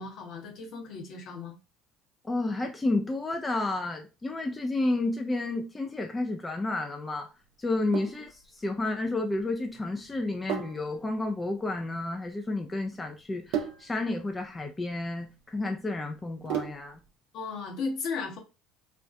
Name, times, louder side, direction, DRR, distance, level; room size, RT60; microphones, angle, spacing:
voice 1, 0.0-1.6 7.9-8.0 17.3-18.4, left 4 dB, 55° left, 0.7 m, -35 dB
voice 2, 2.2-7.3 7.6-17.0, left 2 dB, 20° left, 0.4 m, -31 dB
Sink (filling or washing), 7.6-17.1, right 9 dB, 65° right, 0.4 m, -39 dB
2.4 x 2.1 x 2.4 m
hypercardioid pair, 65°, 0 cm